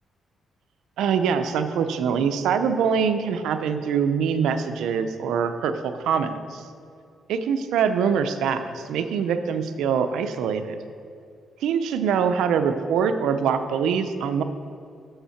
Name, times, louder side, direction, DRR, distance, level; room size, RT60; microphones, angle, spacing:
voice 1, 1.0-6.6 7.3-10.8 11.6-14.4, right 7 dB, 90° right, 9 dB, 0.5 m, -24 dB
7.2 x 5.6 x 5.7 m, 2.4 s
cardioid pair, 105°, 0 cm